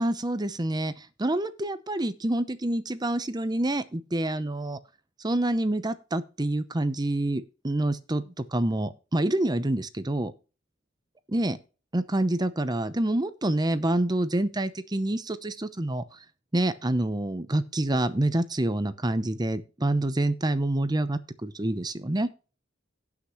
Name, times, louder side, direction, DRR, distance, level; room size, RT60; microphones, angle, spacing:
voice 1, 0.0-4.8 5.2-10.3 11.3-11.6 11.9-16.2 16.5-22.3, right 1 dB, 20° right, 0.8 m, -27 dB
17.5 x 5.9 x 3.1 m
head